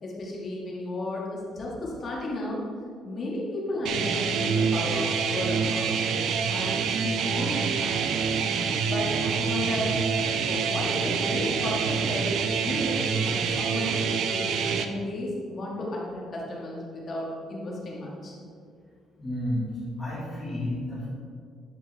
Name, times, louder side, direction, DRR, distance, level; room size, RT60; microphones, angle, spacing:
voice 1, 0.0-2.6 3.0-5.9 6.5-8.4 8.8-10.0 10.5-12.3 12.6-18.3, left 1 dB, 40° left, -4 dB, 2.2 m, -33 dB
sound 1, 3.9-14.9, right 6 dB, 65° right, 0.6 m, -26 dB
voice 2, 19.2-19.7 20.0-21.1, left 1 dB, 15° left, -11 dB, 2.0 m, -31 dB
11.0 x 5.3 x 3.7 m, 2.2 s
cardioid pair, 135°, 0 cm